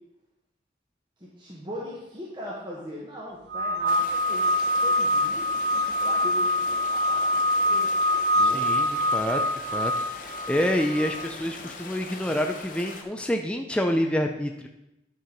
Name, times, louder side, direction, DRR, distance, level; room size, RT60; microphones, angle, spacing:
voice 1, 1.2-4.5 4.8-7.9 8.4-8.7, left 1 dB, 25° right, -5 dB, 1.3 m, -40 dB
sound 1, 3.5-11.3, left 1 dB, 60° right, 0.5 m, -25 dB
sound 2, 3.9-13.0, left 4 dB, 45° left, 1.0 m, -41 dB
voice 2, 8.3-14.7, equal, 5° left, 3 dB, 0.4 m, -28 dB
10.0 x 4.7 x 5.2 m, 0.91 s
head